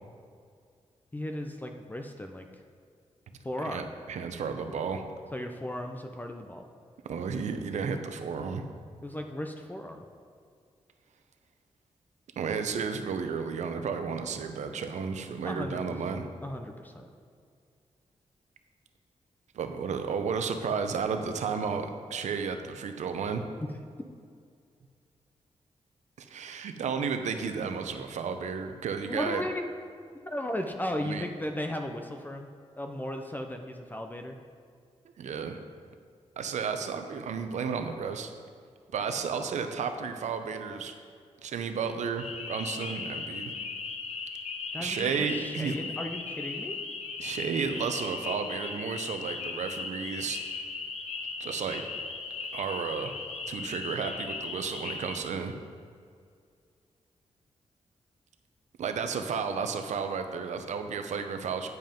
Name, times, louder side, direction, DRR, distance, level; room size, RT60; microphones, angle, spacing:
voice 1, 1.1-2.5 3.4-3.8 5.3-6.6 9.0-10.1 15.4-17.1 29.1-29.7 30.2-32.5 32.8-34.4 44.7-46.8, left 1 dB, 15° left, 4 dB, 0.6 m, -36 dB
voice 2, 3.6-5.0 7.1-8.7 12.4-16.3 19.5-23.5 26.2-29.4 31.0-31.2 35.2-35.6 36.4-38.3 38.9-40.9 41.4-43.5 44.8-45.8 47.2-50.4 51.4-51.8 52.5-53.1 53.5-55.5 58.8-61.7, right 6 dB, 90° right, 7 dB, 0.7 m, -32 dB
sound 1, 42.2-55.2, left 4 dB, 70° left, 0.9 m, -37 dB
9.3 x 5.5 x 5.2 m, 2.2 s
cardioid pair, 90°, 12 cm